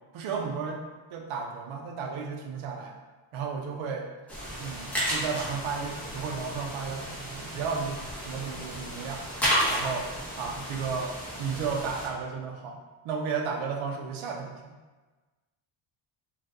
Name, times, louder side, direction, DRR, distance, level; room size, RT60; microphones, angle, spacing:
voice 1, 0.1-0.8 1.1-3.0 3.3-4.1 4.6-9.2 9.7-10.1 10.4-14.7, right 5 dB, 70° right, 1 dB, 0.6 m, -33 dB
sound 1, 4.3-12.1, equal, 5° left, 0.8 m, -33 dB
2.7 x 2.4 x 3.4 m, 1.3 s
cardioid pair, 160°, 50 cm